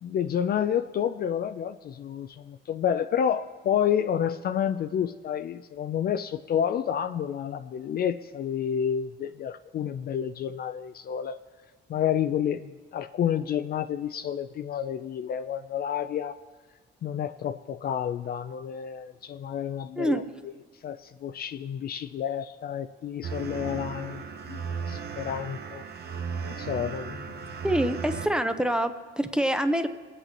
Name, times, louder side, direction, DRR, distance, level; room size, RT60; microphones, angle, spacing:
voice 1, 0.0-11.4 11.9-16.4 17.0-20.5 20.8-25.8 26.6-27.5, left 9 dB, 50° left, 11 dB, 0.4 m, -30 dB
sound 1, 23.2-28.3, right 6 dB, 55° right, 0.8 m, -35 dB
voice 2, 27.6-29.9, right 1 dB, 5° right, 8 dB, 0.7 m, -26 dB
22.5 x 8.2 x 2.9 m, 1.3 s
cardioid pair, 90°, 20 cm